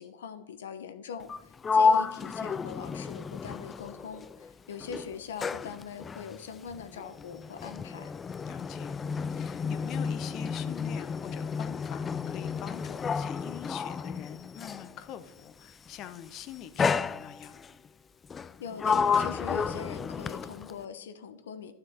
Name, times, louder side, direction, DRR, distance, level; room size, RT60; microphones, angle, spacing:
voice 1, 0.0-8.1 18.6-21.7, left 6 dB, 80° left, 10 dB, 0.9 m, -41 dB
Sliding door, 1.2-4.5 4.8-15.0 15.9-16.2 16.8-17.7 18.3-20.8, left 5 dB, 25° left, 0.4 m, -31 dB
voice 2, 8.4-8.9 9.2-17.6, left 10 dB, 45° left, 12 dB, 0.9 m, -44 dB
12.0 x 6.8 x 4.3 m, 0.95 s
hypercardioid pair, 95°, 0 cm